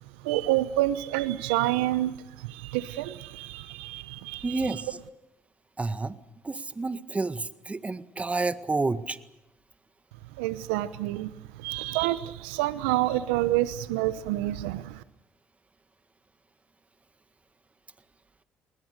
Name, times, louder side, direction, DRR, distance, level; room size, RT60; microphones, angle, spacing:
voice 1, 0.2-4.8 10.4-15.0, right 15 dB, 90° right, 15 dB, 0.9 m, -28 dB
voice 2, 4.4-4.9 5.8-6.1 6.4-9.2, right 3 dB, 25° right, 12 dB, 1.8 m, -29 dB
29.0 x 20.5 x 6.7 m, 0.92 s
hypercardioid pair, 60°, 6 cm